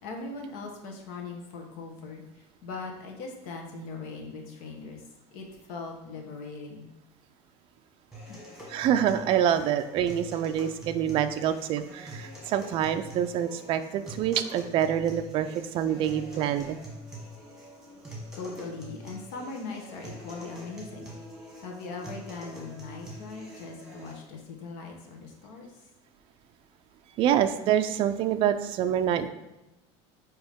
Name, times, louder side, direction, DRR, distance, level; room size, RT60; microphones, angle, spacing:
voice 1, 0.0-5.0 5.3-6.9 8.3-8.4 18.3-25.9, left 4 dB, 70° left, 2 dB, 1.2 m, -40 dB
sound 1, 8.1-24.1, equal, 5° right, 1.4 m, -45 dB
voice 2, 8.7-16.8 27.2-29.3, right 10 dB, 35° right, 8 dB, 0.4 m, -26 dB
8.8 x 3.0 x 3.6 m, 0.96 s
cardioid pair, 160°, 14 cm